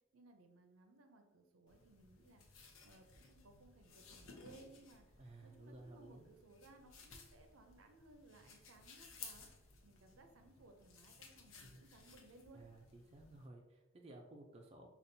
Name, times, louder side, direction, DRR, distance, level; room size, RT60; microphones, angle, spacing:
voice 1, 0.1-2.4 2.8-5.0 5.4-9.5 9.8-12.6, right 2 dB, 85° right, 5 dB, 0.5 m, -63 dB
sound 1, 1.7-13.5, left 4 dB, 85° left, 0.7 m, -59 dB
voice 2, 5.2-6.3 11.5-11.8 12.5-14.9, right 2 dB, 30° right, 1 dB, 0.4 m, -56 dB
5.2 x 2.4 x 2.6 m, 1.1 s
head